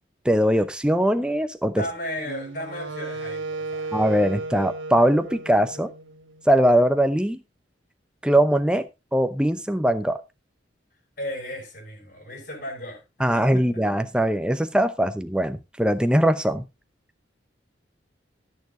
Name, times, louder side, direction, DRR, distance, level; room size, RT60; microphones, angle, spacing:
voice 1, 0.2-1.8 3.9-5.9 6.5-7.4 8.2-8.8 9.1-10.2 13.2-16.6, right 1 dB, 5° right, 0.7 m, -21 dB
voice 2, 1.7-4.0 11.2-13.5, left 1 dB, 50° left, 5.2 m, -35 dB
Wind instrument woodwind instrument, 2.2-6.5, right 3 dB, 85° right, 1.4 m, -34 dB
14.0 x 7.0 x 3.8 m
head